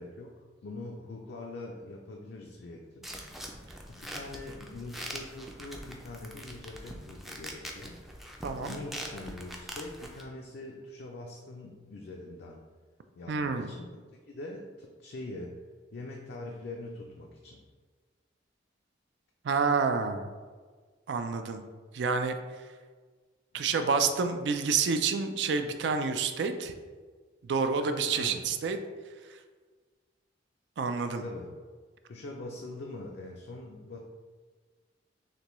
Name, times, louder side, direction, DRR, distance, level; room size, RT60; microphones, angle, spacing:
voice 1, 0.0-3.1 3.9-8.0 8.7-12.6 13.2-15.6 15.9-17.6 23.5-23.7 28.1-28.5 31.2-31.5 32.1-34.0, left 2 dB, 60° left, 0 dB, 0.4 m, -43 dB
sound 1, 3.0-10.2, equal, ahead, 0.4 m, -43 dB
voice 2, 8.4-8.8 13.3-13.7 19.4-20.3 21.1-21.6 21.9-22.4 23.5-26.7 27.4-28.8 30.8-31.2, right 5 dB, 65° right, 8 dB, 0.4 m, -28 dB
6.5 x 2.2 x 3.0 m, 1.5 s
head